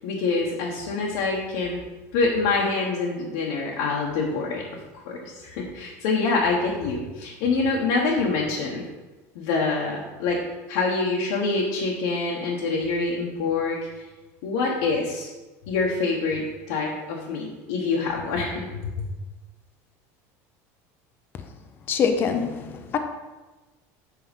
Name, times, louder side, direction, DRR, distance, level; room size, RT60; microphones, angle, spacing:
voice 1, 0.0-1.8 2.1-4.6 5.1-8.9 9.3-10.4 10.7-13.8 14.4-15.3 15.7-16.4 16.7-18.7 19.0-19.1, left 4 dB, 70° left, -4 dB, 1.4 m, -25 dB
voice 2, 21.9-23.0, left 6 dB, 30° left, 6 dB, 0.7 m, -24 dB
7.7 x 4.9 x 5.4 m, 1.2 s
cardioid pair, 165°, 7 cm